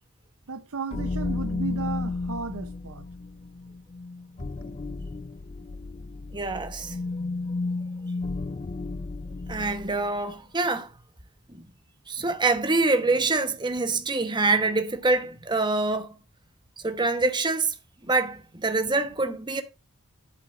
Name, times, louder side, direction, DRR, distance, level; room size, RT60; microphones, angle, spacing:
voice 1, 0.5-3.1, right 4 dB, 75° right, 0.8 m, -34 dB
sound 1, 0.9-10.1, left 3 dB, 25° left, 0.4 m, -33 dB
voice 2, 6.3-7.0 9.5-10.9 11.5-11.6 12.1-16.1 16.8-17.7 18.1-19.6, right 3 dB, 20° right, 1.2 m, -25 dB
11.5 x 8.8 x 2.6 m
head